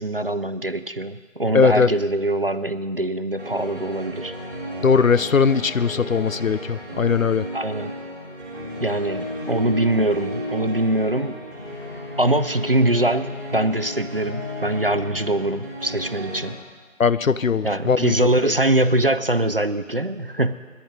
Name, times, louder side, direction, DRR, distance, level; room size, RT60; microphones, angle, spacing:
voice 1, 0.0-4.3 7.5-7.9 8.8-11.4 12.2-16.6 17.6-20.5, right 1 dB, 45° right, 12 dB, 0.5 m, -23 dB
voice 2, 1.5-1.9 4.8-7.5 17.0-18.5, left 5 dB, 85° left, 15 dB, 0.7 m, -19 dB
sound 1, 3.4-16.5, equal, 15° right, 2.2 m, -33 dB
10.5 x 9.9 x 9.5 m, 1.5 s
figure-of-eight pair, 165°, 39 cm